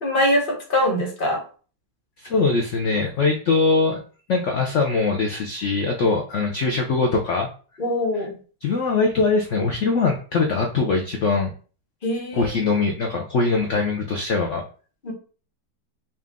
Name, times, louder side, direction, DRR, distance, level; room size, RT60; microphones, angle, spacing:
voice 1, 0.0-1.4 7.8-8.3 12.0-12.7 15.0-15.1, left 1 dB, 35° left, 0 dB, 0.9 m, -23 dB
voice 2, 2.2-4.0 4.3-7.5 8.6-11.5 12.3-14.6, left 4 dB, 85° left, 1 dB, 0.6 m, -22 dB
4.3 x 2.5 x 3.5 m, 0.39 s
omnidirectional pair, 2.0 m